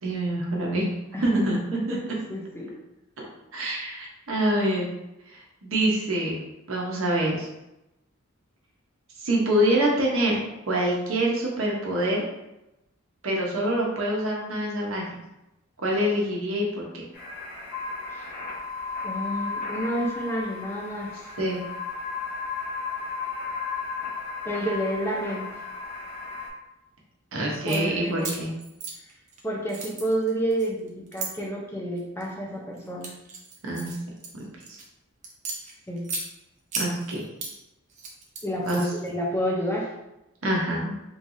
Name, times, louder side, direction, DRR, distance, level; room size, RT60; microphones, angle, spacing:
voice 1, 0.0-0.9 1.2-2.0 3.5-4.9 5.3-7.5 9.2-10.4 10.7-12.2 13.2-15.2 15.8-17.0 21.4-21.6 27.3-28.5 33.6-33.9 34.3-34.4 34.7-34.8 36.7-37.2 38.6-38.9 40.4-40.9, right 1 dB, 75° right, -2 dB, 1.0 m, -25 dB
voice 2, 2.3-2.7 18.1-18.2 19.0-21.1 24.4-25.5 27.6-28.4 29.4-33.1 35.9-36.1 38.4-39.9, right 1 dB, 10° left, -3 dB, 0.6 m, -29 dB
sound 1, 17.1-26.5, left 4 dB, 45° left, 1.3 m, -34 dB
sound 2, 27.5-27.8 28.2-29.4 29.7-31.3 32.0-32.3 32.8-34.8 35.2-36.3 36.7-37.5 37.9-39.1, right 3 dB, 35° right, 0.6 m, -35 dB
3.6 x 3.2 x 2.6 m, 0.92 s
head